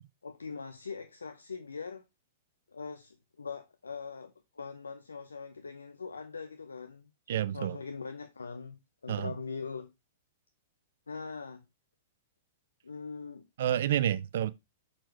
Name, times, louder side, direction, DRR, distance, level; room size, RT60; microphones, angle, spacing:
voice 1, 0.2-2.0 2.7-7.1 7.5-9.9 11.1-11.6 12.8-13.5, left 5 dB, 85° left, 0.6 m, -42 dB
voice 2, 7.3-7.8 9.1-9.3 13.6-14.5, right 11 dB, 65° right, 0.6 m, -29 dB
6.6 x 4.3 x 4.4 m
hypercardioid pair, 110°, 0 cm